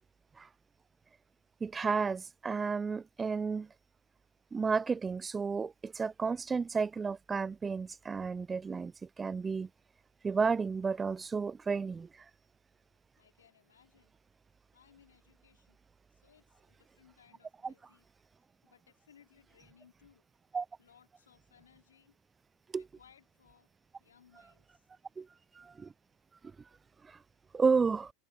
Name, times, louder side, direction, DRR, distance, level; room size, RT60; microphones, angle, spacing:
voice 1, 1.6-3.7 4.5-8.9 9.2-9.7 10.2-12.1 20.5-20.7 22.7-22.8 25.2-25.3 25.6-25.9 27.1-27.2 27.5-28.1, right 5 dB, 20° right, 0.6 m, -32 dB
voice 2, 13.2-14.1 14.7-15.8 16.1-18.0 18.6-20.2 20.8-22.2 22.8-23.7 24.0-24.9, left 8 dB, 85° left, 4.9 m, -64 dB
hypercardioid pair, 85°, 0 cm